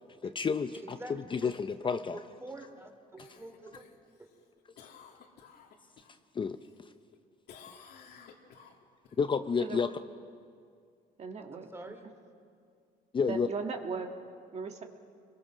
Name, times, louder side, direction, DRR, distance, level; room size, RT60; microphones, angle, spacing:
voice 1, 0.2-2.2 6.3-6.6 9.2-9.9 13.1-13.5, left 5 dB, 30° left, 9 dB, 0.6 m, -30 dB
voice 2, 0.7-1.5 2.1-3.8 11.5-12.1, right 2 dB, 15° right, 4 dB, 3.0 m, -46 dB
Cough, 3.2-6.2 6.6-7.2 7.5-9.2 13.6-13.7, left 7 dB, 70° left, 2.6 m, -55 dB
voice 3, 11.2-11.7 13.3-14.1 14.5-14.8, right 5 dB, 40° right, 4 dB, 1.9 m, -37 dB
28.5 x 22.0 x 6.3 m, 2.3 s
cardioid pair, 110°, 17 cm